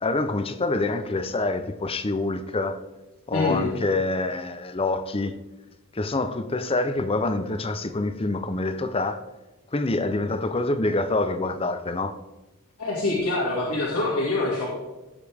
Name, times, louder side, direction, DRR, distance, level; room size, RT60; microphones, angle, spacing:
voice 1, 0.0-2.8 3.3-5.4 5.9-9.2 9.7-12.2, left 2 dB, 25° left, 0.6 m, -26 dB
voice 2, 3.3-3.7 12.8-14.7, left 2 dB, 75° left, 2.2 m, -25 dB
16.0 x 6.7 x 3.5 m
head